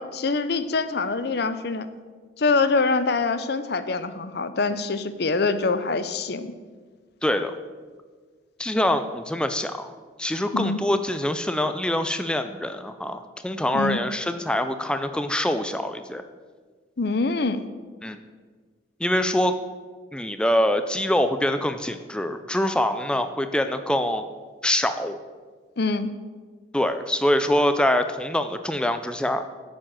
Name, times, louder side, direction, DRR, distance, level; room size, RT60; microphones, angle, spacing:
voice 1, 0.0-1.9 2.4-6.5 10.5-10.8 13.7-14.0 17.0-17.6 25.8-26.1, left 3 dB, 55° left, 12 dB, 0.6 m, -24 dB
voice 2, 7.2-7.5 8.6-9.9 10.2-16.2 18.0-18.2 19.0-19.6 20.1-24.2 24.6-25.2 26.7-29.4, left 1 dB, 5° left, 8 dB, 0.4 m, -24 dB
8.7 x 7.5 x 7.5 m, 1.5 s
head